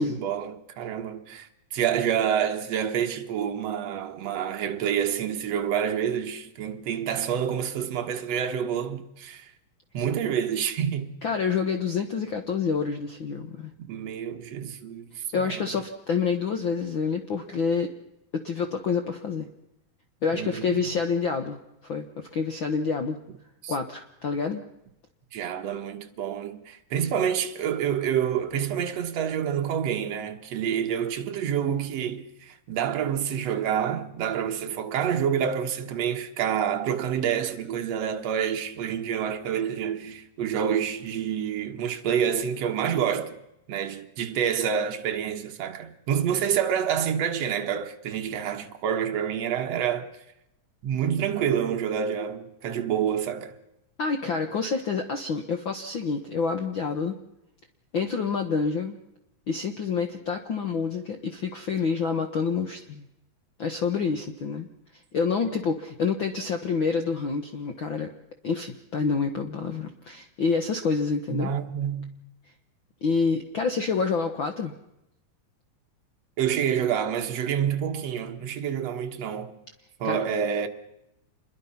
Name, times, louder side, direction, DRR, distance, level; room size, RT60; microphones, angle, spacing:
voice 1, 0.0-9.5 9.9-11.1 13.8-15.7 20.3-21.0 23.6-23.8 25.3-43.4 43.7-50.1 50.8-53.6 71.3-72.2 76.4-79.6 80.0-80.7, right 8 dB, 60° right, 2.2 m, -28 dB
voice 2, 11.2-13.7 15.3-17.9 18.3-19.5 20.2-23.2 23.7-24.6 54.0-57.1 57.9-59.0 59.5-63.0 63.6-64.7 65.1-68.1 68.4-71.5 73.0-74.7 80.0-80.2, left 5 dB, 80° left, 1.1 m, -27 dB
27.0 x 21.5 x 5.8 m
omnidirectional pair, 3.9 m